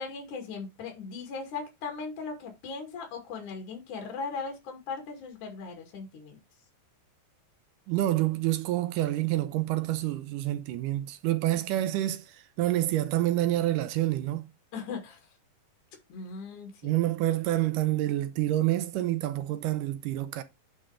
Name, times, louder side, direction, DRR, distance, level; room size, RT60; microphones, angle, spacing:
voice 1, 0.0-6.4 14.7-15.2 16.1-17.0, left 4 dB, 65° left, 3.6 m, -38 dB
voice 2, 7.9-14.5 16.8-20.4, right 15 dB, 75° right, 2.1 m, -28 dB
9.5 x 3.8 x 4.9 m
omnidirectional pair, 4.0 m